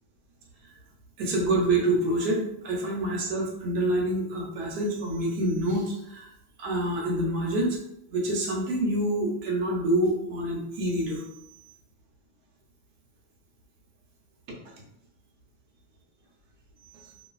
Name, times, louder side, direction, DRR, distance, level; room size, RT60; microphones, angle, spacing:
voice 1, 1.2-6.3 6.6-7.8 8.1-11.2 16.9-17.0, right 1 dB, 75° right, -1 dB, 1.2 m, -27 dB
2.6 x 2.5 x 2.2 m, 0.79 s
omnidirectional pair, 1.9 m